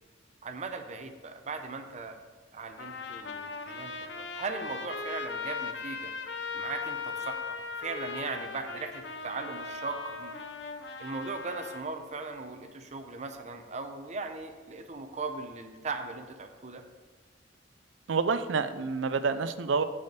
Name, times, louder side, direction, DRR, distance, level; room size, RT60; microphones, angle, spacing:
voice 1, 0.4-2.2 2.5-6.1 6.5-10.3 11.0-16.8, right 3 dB, 40° right, 6 dB, 0.7 m, -38 dB
Trumpet, 2.8-11.8, left 4 dB, 60° left, 0.6 m, -38 dB
voice 2, 18.1-19.8, right 5 dB, 85° right, 12 dB, 0.5 m, -28 dB
6.5 x 5.0 x 6.7 m, 1.4 s
head